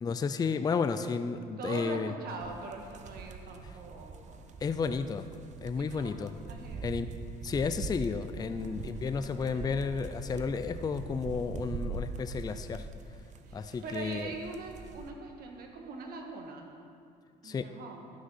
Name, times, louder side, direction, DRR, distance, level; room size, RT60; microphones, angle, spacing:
voice 1, 0.0-2.1 4.6-5.3 5.6-6.3 6.8-7.1 7.4-12.9 13.5-14.3 17.4-17.7, left 5 dB, 25° left, 10 dB, 0.4 m, -32 dB
voice 2, 1.6-4.5 5.8-6.2 6.5-6.9 8.4-10.3 13.5-16.7 17.4-18.1, right 4 dB, 65° right, 2 dB, 1.6 m, -43 dB
sound 1, 2.4-15.1, right 4 dB, 45° right, 0.7 m, -42 dB
12.0 x 6.3 x 5.6 m, 2.4 s
cardioid pair, 110°, 17 cm